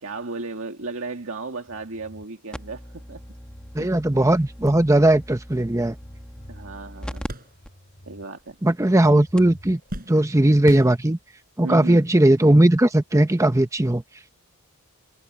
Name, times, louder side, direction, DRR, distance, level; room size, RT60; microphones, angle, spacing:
voice 1, 0.0-3.2 3.8-3.9 6.5-7.2 8.1-8.6 11.6-12.0, right 3 dB, 65° right, 1.9 m, -34 dB
sound 1, 1.7-3.7 4.2-5.3 5.6-8.3 8.6-10.1, equal, 40° left, 5.3 m, -49 dB
sound 2, 2.5-7.3 7.6-7.7 8.4-8.5 9.0-9.1 9.4-9.6 10.9-11.0, equal, 5° left, 1.2 m, -39 dB
voice 2, 3.7-6.0 8.6-9.8 10.1-11.2 11.6-14.0, right 1 dB, 15° right, 0.8 m, -18 dB
sound 3, 4.5-8.1 8.4-9.1 9.4-11.5 12.2-12.3 13.6-13.8, equal, 40° right, 7.7 m, -41 dB
head